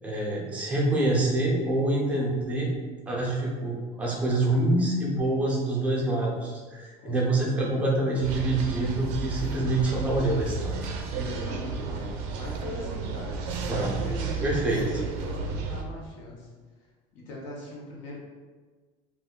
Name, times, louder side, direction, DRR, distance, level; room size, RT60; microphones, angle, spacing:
voice 1, 0.0-2.7 3.1-10.8 13.7-14.0 14.4-14.8, right 2 dB, 10° right, -4 dB, 0.5 m, -26 dB
voice 2, 7.0-7.8 11.1-16.5 17.1-18.2, left 1 dB, 55° left, -2 dB, 0.8 m, -40 dB
sound 1, 8.2-15.8, right 4 dB, 65° right, 0.4 m, -33 dB
2.6 x 2.4 x 3.6 m, 1.4 s
cardioid pair, 175°, 15 cm